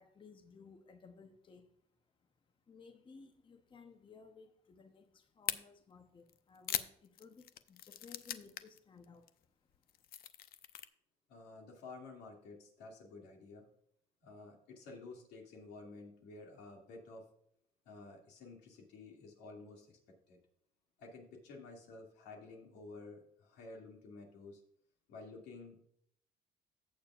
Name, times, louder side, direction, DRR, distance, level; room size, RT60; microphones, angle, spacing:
voice 1, 0.0-1.8 2.7-9.4, left 5 dB, 30° left, 0.8 m, -58 dB
sound 1, 5.5-5.6 6.3-8.8 9.0-9.3 9.7-10.9, left 11 dB, 65° left, 0.6 m, -40 dB
voice 2, 11.3-13.7 14.2-17.3 17.8-19.9 20.3-20.4 21.0-24.6 25.1-25.8, left 3 dB, 85° left, 2.4 m, -52 dB
15.5 x 6.9 x 2.4 m
cardioid pair, 110°, 17 cm